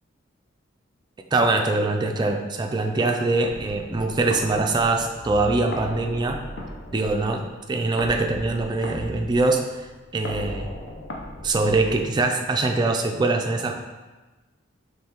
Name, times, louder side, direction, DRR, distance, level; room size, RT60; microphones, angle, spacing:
voice 1, 1.3-6.4 6.9-7.4 7.7-10.7 11.4-13.8, right 3 dB, 20° right, 3 dB, 0.3 m, -23 dB
sound 1, 3.5-12.4, left 1 dB, 65° left, 0.7 m, -37 dB
5.4 x 3.2 x 2.9 m, 1.2 s
head